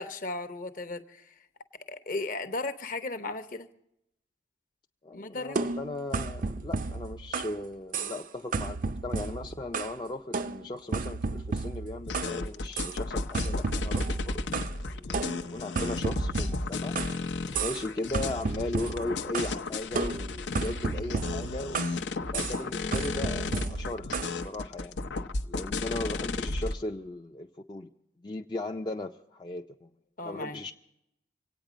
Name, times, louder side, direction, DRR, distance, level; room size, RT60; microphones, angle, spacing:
voice 1, 0.0-1.3 1.9-3.7 5.1-5.6 30.2-30.6, left 2 dB, 50° left, 10 dB, 0.9 m, -35 dB
voice 2, 5.0-16.9 17.6-21.9 22.3-25.0 25.5-27.9 28.2-29.9 30.2-30.7, left 2 dB, 25° left, 2 dB, 0.4 m, -37 dB
sound 1, 5.6-7.6 7.9-8.3 8.5-10.0 10.3-12.4 12.8-13.0 13.3-14.8 15.1-17.2 17.5-17.9 18.1-19.6 20.0-22.0 22.3-22.6 22.9-24.4, right 4 dB, 50° right, 0.5 m, -33 dB
sound 2, 12.1-26.7, left 3 dB, 80° left, 0.7 m, -33 dB
25.5 x 9.0 x 5.1 m, 0.81 s
head